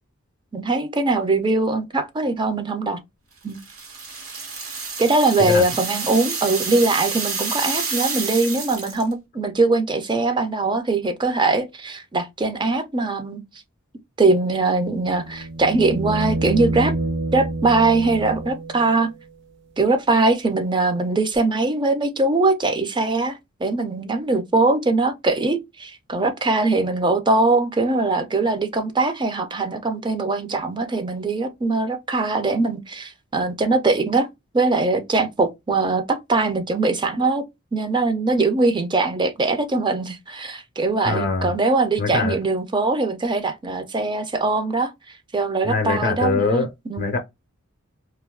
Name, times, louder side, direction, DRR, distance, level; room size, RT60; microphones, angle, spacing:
voice 1, 0.5-3.0 3.4-3.6 5.0-13.4 14.2-16.9 17.3-19.1 19.8-34.3 34.5-37.4 37.7-44.9 45.3-47.1, right 3 dB, 20° right, 0.4 m, -21 dB
sound 1, 3.5-9.1, right 4 dB, 85° right, 1.2 m, -29 dB
sound 2, 14.8-18.9 21.3-21.4, right 2 dB, 55° right, 0.7 m, -27 dB
voice 2, 41.0-41.5 42.0-42.4 45.6-46.7 47.0-47.2, left 4 dB, 40° left, 0.4 m, -22 dB
2.5 x 2.3 x 3.4 m
head